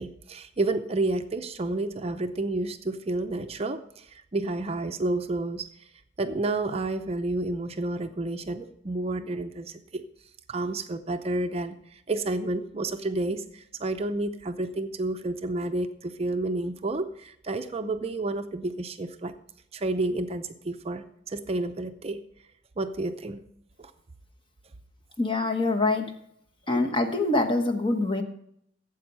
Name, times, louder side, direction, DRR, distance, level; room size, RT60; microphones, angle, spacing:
voice 1, 0.0-5.7 6.2-10.0 10.5-19.3 19.7-22.2 22.8-23.4 23.8-23.9, right 2 dB, 35° right, 8 dB, 0.6 m, -30 dB
voice 2, 25.2-26.1 26.7-28.2, left 2 dB, 25° left, 5 dB, 1.2 m, -25 dB
12.5 x 8.2 x 5.4 m, 0.73 s
head